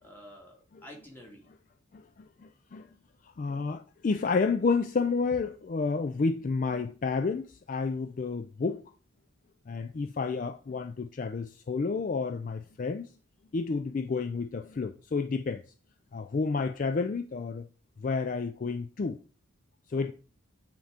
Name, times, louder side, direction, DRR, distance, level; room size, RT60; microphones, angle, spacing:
voice 1, 0.0-1.5 19.9-20.1, equal, 10° left, 1.9 m, -50 dB
voice 2, 1.9-2.9 3.2-8.8 9.7-13.1 13.5-15.6 16.1-17.7 18.0-19.2 19.9-20.1, left 4 dB, 40° left, 0.3 m, -30 dB
8.9 x 3.5 x 5.0 m
head